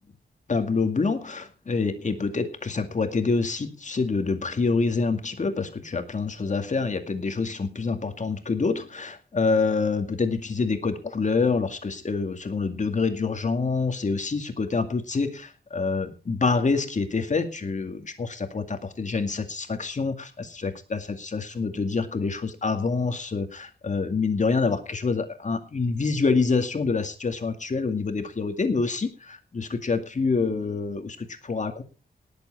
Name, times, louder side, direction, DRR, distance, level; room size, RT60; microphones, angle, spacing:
voice 1, 0.5-31.8, left 4 dB, 40° left, 6 dB, 2.2 m, -26 dB
19.0 x 8.0 x 4.7 m, 0.32 s
wide cardioid pair, 165°, 19 cm